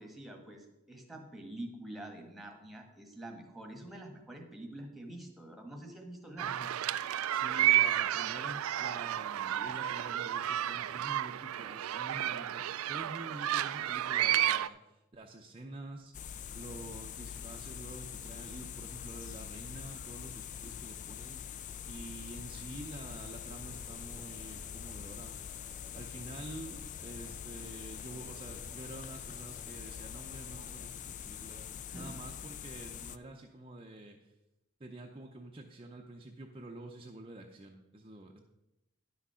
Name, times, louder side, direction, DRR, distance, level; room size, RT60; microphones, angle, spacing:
voice 1, 0.0-6.7 31.9-32.2, right 1 dB, ahead, 2 dB, 1.3 m, -46 dB
voice 2, 6.4-6.7 7.3-16.2 16.5-21.4 21.9-25.4 25.9-34.3 34.8-38.4, right 2 dB, 25° right, 1 dB, 0.6 m, -48 dB
sound 1, 6.4-14.7, right 12 dB, 80° right, 0.4 m, -31 dB
sound 2, 16.1-33.2, left 8 dB, 35° left, 0.3 m, -44 dB
sound 3, 23.2-31.9, equal, 80° left, 2.4 m, -59 dB
10.5 x 6.1 x 5.6 m, 0.95 s
head